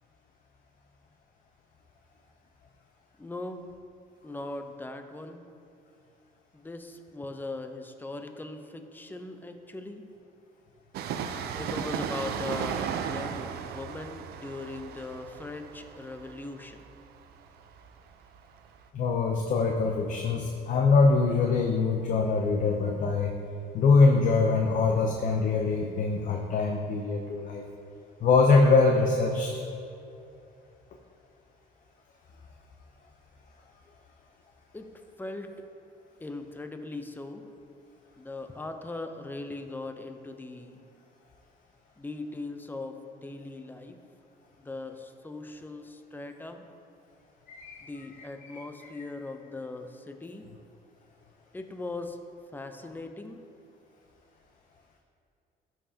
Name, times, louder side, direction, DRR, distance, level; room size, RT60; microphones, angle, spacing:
voice 1, 3.2-3.7 4.2-5.4 6.5-10.0 11.5-16.8 34.7-34.9 35.2-35.5 36.2-37.5 38.2-40.8 42.0-44.0 44.6-46.6 47.8-50.5 51.5-52.2 52.5-53.4, left 2 dB, 10° left, 6 dB, 0.6 m, -39 dB
Train, 10.9-18.4 18.6-18.7, right 8 dB, 70° right, 0.5 m, -36 dB
voice 2, 18.9-23.3 23.7-27.6 28.2-29.5 47.5-47.9 48.5-48.6, left 4 dB, 50° left, 2 dB, 0.7 m, -23 dB
13.5 x 5.7 x 2.8 m, 2.6 s
cardioid pair, 110°, 17 cm